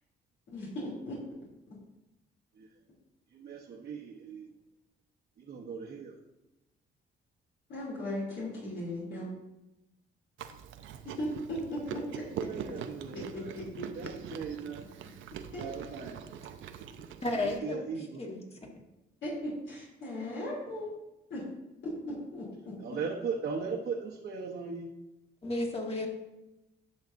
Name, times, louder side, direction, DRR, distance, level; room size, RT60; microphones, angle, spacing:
voice 1, 0.5-1.2 7.7-9.3 11.0-12.2 13.1-14.1 15.5-15.7 19.2-20.9 21.3-21.4 22.1-22.7, left 1 dB, 70° left, -6 dB, 3.0 m, -37 dB
voice 2, 3.3-4.5 5.4-6.2 12.4-13.5 13.9-14.8 15.6-16.2 17.4-18.2 22.8-24.9, right 5 dB, 60° right, -3 dB, 1.0 m, -38 dB
Chewing mastication, 10.4-17.6, right 8 dB, 80° right, 0.6 m, -43 dB
voice 3, 17.2-17.8 18.2-18.4 25.4-26.1, left 2 dB, 30° left, 1 dB, 1.8 m, -32 dB
10.5 x 6.5 x 2.6 m, 0.96 s
cardioid pair, 90°, 20 cm